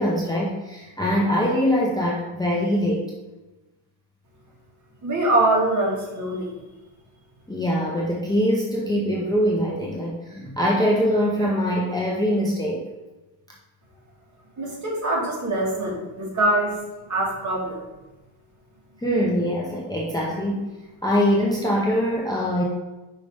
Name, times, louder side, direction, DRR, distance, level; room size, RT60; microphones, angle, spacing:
voice 1, 0.0-3.1 7.5-12.8 19.0-20.7 21.0-22.6, equal, 10° left, -4 dB, 0.8 m, -23 dB
voice 2, 5.0-6.5 14.6-16.8 17.1-17.8, right 2 dB, 35° right, -3 dB, 1.9 m, -23 dB
5.4 x 4.9 x 3.5 m, 1.1 s
cardioid pair, 120°, 49 cm